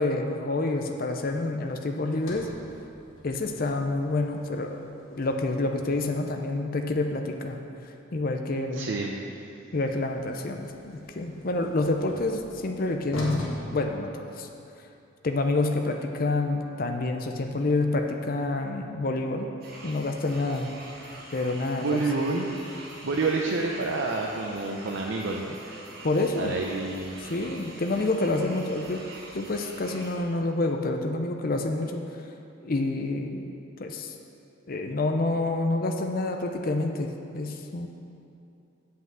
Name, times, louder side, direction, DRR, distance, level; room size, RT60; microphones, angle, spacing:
voice 1, 0.0-2.5 3.2-7.6 8.1-8.9 9.7-13.4 13.7-14.5 15.2-19.5 19.8-20.7 21.3-22.0 26.0-26.5 27.2-29.0 29.3-32.0 32.6-34.1 34.7-37.9, left 2 dB, 45° left, 4 dB, 0.5 m, -28 dB
Sliding door, 2.1-6.4 9.8-14.8, left 1 dB, 80° left, 1.4 m, -43 dB
voice 2, 8.7-9.1 21.1-21.3 21.8-22.5 23.0-25.6 26.4-27.1, right 3 dB, 65° right, -1 dB, 0.6 m, -28 dB
sound 1, 19.6-30.2, right 2 dB, 45° right, 1.5 m, -45 dB
8.0 x 5.7 x 7.6 m, 2.7 s
head